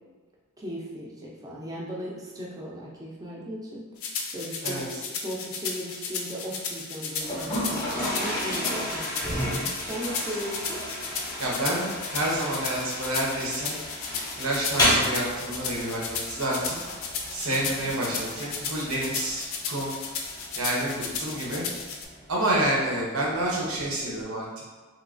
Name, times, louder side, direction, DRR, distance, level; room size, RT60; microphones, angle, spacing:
voice 1, 0.6-3.9 4.3-4.9 5.2-10.8, equal, 15° right, -5 dB, 0.4 m, -37 dB
sound 1, 4.0-22.1, left 5 dB, 70° left, 0.4 m, -34 dB
Toilet flush, 7.2-24.2, equal, 20° left, 0.7 m, -33 dB
voice 2, 11.4-13.8 14.4-16.7 17.3-19.9 20.6-21.6 22.3-24.5, right 1 dB, 90° right, -4 dB, 0.8 m, -28 dB
3.0 x 2.7 x 2.5 m, 1.4 s
head